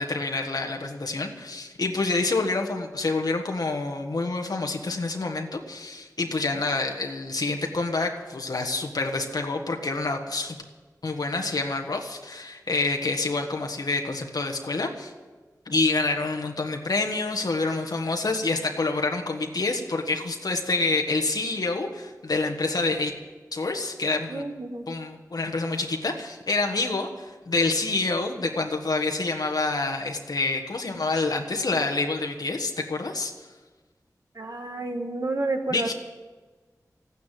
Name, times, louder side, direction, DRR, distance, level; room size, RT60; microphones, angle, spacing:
voice 1, 0.0-10.6 11.0-15.1 15.6-23.1 23.5-24.4 24.9-33.3 35.7-35.9, left 3 dB, 70° left, 2 dB, 1.5 m, -27 dB
voice 2, 24.3-24.9 34.3-35.9, right 2 dB, 60° right, 4 dB, 1.5 m, -30 dB
13.5 x 9.5 x 9.3 m, 1.3 s
wide cardioid pair, 50°, 7 cm